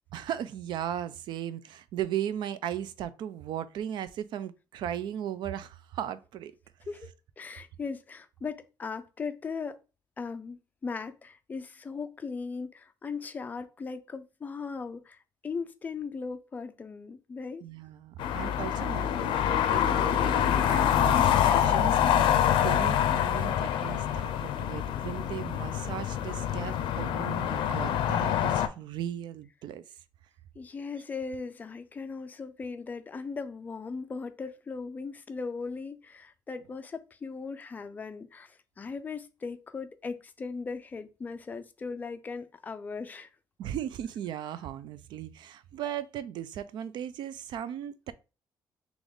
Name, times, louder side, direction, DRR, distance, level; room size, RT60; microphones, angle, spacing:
voice 1, 0.1-6.5 17.6-29.8 43.6-48.1, right 10 dB, 70° right, 0.4 m, -37 dB
voice 2, 7.4-9.8 10.2-17.6 30.6-43.3, left 4 dB, 20° left, 0.4 m, -38 dB
sound 1, 18.2-28.7, left 10 dB, 85° left, 0.5 m, -26 dB
3.4 x 3.0 x 3.8 m
cardioid pair, 170°, 8 cm